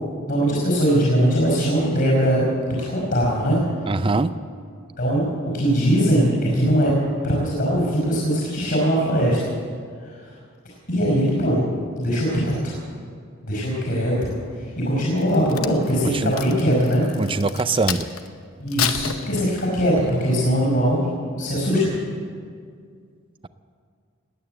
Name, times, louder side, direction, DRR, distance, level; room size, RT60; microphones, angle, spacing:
voice 1, 0.3-3.6 5.0-5.3 5.5-6.9 7.2-9.4 10.9-11.6 12.0-12.8 13.5-14.3 14.8-17.1 18.6-21.1 21.3-21.9, equal, 50° left, -4 dB, 4.9 m, -21 dB
voice 2, 3.9-4.3 16.0-16.3 17.2-18.1, right 3 dB, 25° right, 13 dB, 0.5 m, -22 dB
Crack, 15.2-18.3 18.7-19.9 20.4-20.7, left 9 dB, 80° left, 0.9 m, -30 dB
20.0 x 9.2 x 7.8 m, 2.1 s
head